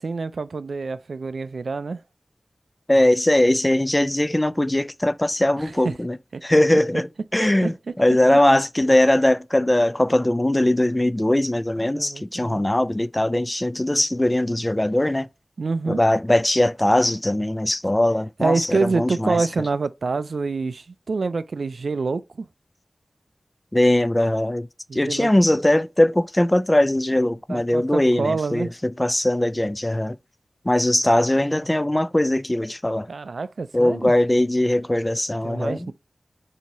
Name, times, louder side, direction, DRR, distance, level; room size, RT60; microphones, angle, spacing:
voice 1, 0.0-2.0 5.6-5.9 6.3-6.4 7.6-7.7 11.9-12.6 15.6-16.0 18.4-22.5 24.9-25.3 27.5-28.7 33.1-34.1 35.4-35.9, right 4 dB, 85° right, 0.3 m, -26 dB
voice 2, 2.9-6.2 6.4-15.3 15.9-19.5 23.7-24.7 24.9-30.2 30.6-33.1 33.7-35.9, left 1 dB, 20° left, 0.3 m, -20 dB
4.5 x 2.8 x 4.0 m
cardioid pair, 40°, 0 cm